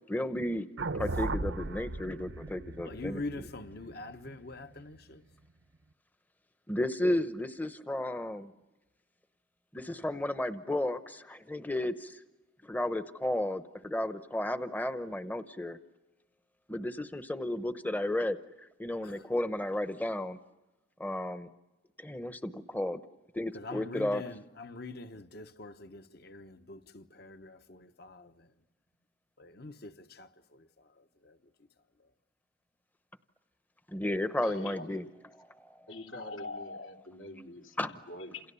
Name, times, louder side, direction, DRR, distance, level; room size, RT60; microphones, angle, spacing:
voice 1, 0.1-0.7 0.9-3.5 6.7-8.5 9.7-12.2 12.6-15.8 16.7-20.4 21.0-21.5 22.0-23.0 23.3-24.2 33.9-35.0 35.6-35.7 37.8-38.0, left 1 dB, 10° left, 0.8 m, -33 dB
sound 1, 0.8-5.0, right 3 dB, 70° right, 0.9 m, -37 dB
voice 2, 2.8-5.2 19.0-19.2 23.5-28.5 29.4-30.7 31.2-31.4, left 2 dB, 55° left, 1.2 m, -44 dB
voice 3, 34.4-35.0 35.9-37.7 38.1-38.4, left 2 dB, 80° left, 3.2 m, -43 dB
29.5 x 28.0 x 7.0 m
head